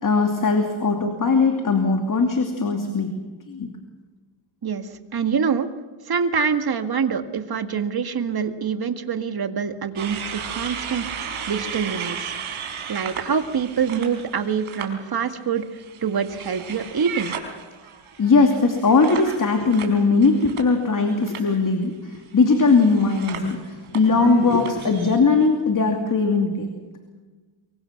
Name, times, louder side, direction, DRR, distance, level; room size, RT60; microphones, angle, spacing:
voice 1, 0.0-3.1 3.5-3.7 18.2-26.7, left 4 dB, 40° left, 4 dB, 2.7 m, -19 dB
voice 2, 4.6-5.7 6.1-12.6 12.9-17.3, right 6 dB, 45° right, 7 dB, 2.0 m, -25 dB
sound 1, 10.0-14.9 15.3-21.0 21.2-21.5 22.4-25.2, right 7 dB, 90° right, 4.5 m, -35 dB
25.5 x 23.5 x 6.0 m, 1.3 s
cardioid pair, 110°, 49 cm